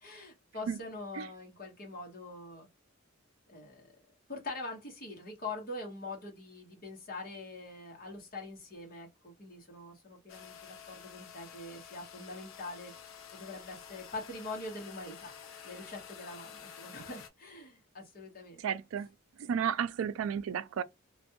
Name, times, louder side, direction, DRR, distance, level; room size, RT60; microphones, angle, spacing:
voice 1, 0.0-2.7 3.5-3.9 4.3-12.9 13.3-15.4 15.6-18.6, left 2 dB, 40° left, 1.0 m, -44 dB
sound 1, 10.3-17.3, left 8 dB, 70° left, 0.6 m, -50 dB
voice 2, 18.6-19.1 19.4-20.8, right 8 dB, 70° right, 0.3 m, -32 dB
2.5 x 2.2 x 2.8 m
head